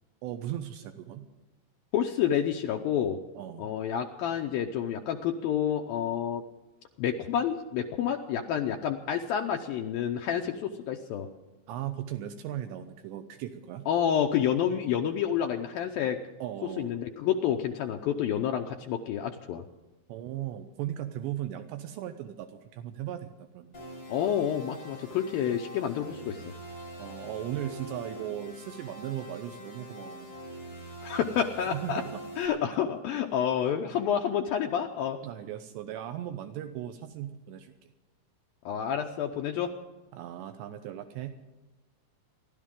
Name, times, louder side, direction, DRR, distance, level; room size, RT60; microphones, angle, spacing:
voice 1, 0.2-1.3 3.3-3.7 11.7-13.9 16.4-16.9 20.1-23.8 27.0-30.3 31.6-32.2 35.2-37.9 40.1-41.4, right 11 dB, 80° right, 8 dB, 2.9 m, -37 dB
voice 2, 1.9-3.2 3.6-6.4 7.0-11.3 13.9-16.2 16.8-19.6 24.1-26.4 31.0-32.0 32.4-35.2 38.7-39.7, left 9 dB, 85° left, 3 dB, 2.1 m, -29 dB
sound 1, 23.7-32.5, equal, 30° left, 5.8 m, -44 dB
29.0 x 12.0 x 3.7 m, 1.1 s
omnidirectional pair, 5.3 m